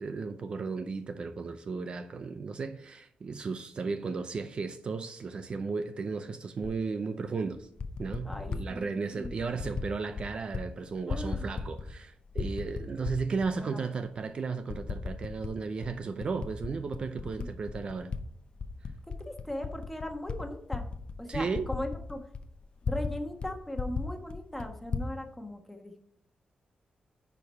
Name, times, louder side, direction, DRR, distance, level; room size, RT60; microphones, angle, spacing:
voice 1, 0.0-7.7 8.0-18.1 21.3-21.7, right 4 dB, 40° right, 0.5 m, -35 dB
Typing, 6.6-6.8 7.6-8.7 9.2-9.9 10.1-10.6 10.9-12.0 12.3-13.5 14.0-14.1 14.7-15.5 15.8-18.2 18.5-23.1 23.4-23.5 23.7-25.1, left 5 dB, 40° left, 0.7 m, -36 dB
voice 2, 8.2-9.4 11.1-11.5 13.5-13.8 17.2-17.6 19.2-20.8 21.2-22.3 22.8-26.0, left 1 dB, 5° left, 1.2 m, -39 dB
10.0 x 4.8 x 5.3 m
wide cardioid pair, 180°, 3 cm